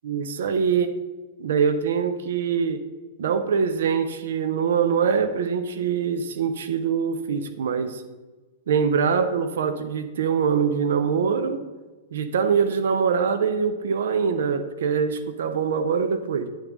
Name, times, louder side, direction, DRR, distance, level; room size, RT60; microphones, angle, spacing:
voice 1, 0.0-0.9 1.4-2.8 3.2-8.0 8.7-11.6 12.1-16.5, right 6 dB, 60° right, 9 dB, 0.5 m, -23 dB
8.7 x 3.7 x 6.1 m, 1.2 s
figure-of-eight pair, 100°, 0 cm